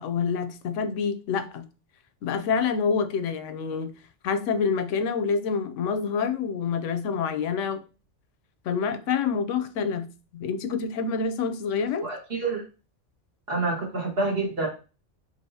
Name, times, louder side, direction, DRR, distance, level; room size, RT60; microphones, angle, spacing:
voice 1, 0.0-1.7 2.2-3.9 4.2-7.8 8.7-12.1, left 6 dB, 85° left, 0.9 m, -27 dB
voice 2, 12.0-12.6 13.5-14.7, right 3 dB, 55° right, 1.6 m, -27 dB
4.7 x 2.8 x 2.7 m
omnidirectional pair, 1.2 m